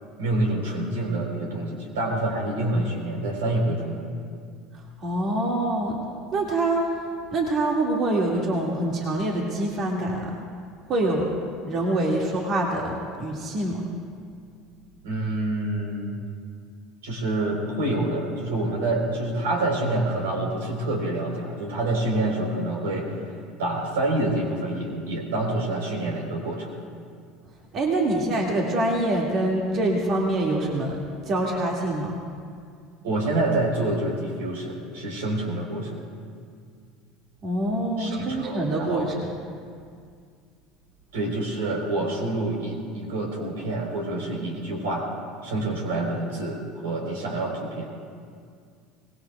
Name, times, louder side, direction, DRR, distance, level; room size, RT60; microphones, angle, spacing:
voice 1, 0.2-4.1 15.0-16.1 17.0-23.2 23.6-26.7 33.0-36.0 38.0-39.1 41.1-45.1 45.4-47.9, right 2 dB, 85° right, 0 dB, 3.6 m, -27 dB
voice 2, 5.0-6.0 6.3-6.9 7.3-10.4 10.9-11.3 11.7-13.8 27.7-31.0 31.3-32.1 37.4-39.3, right 1 dB, 50° right, -2 dB, 2.0 m, -25 dB
24.0 x 19.5 x 2.3 m, 2.2 s
hypercardioid pair, 80°, 0 cm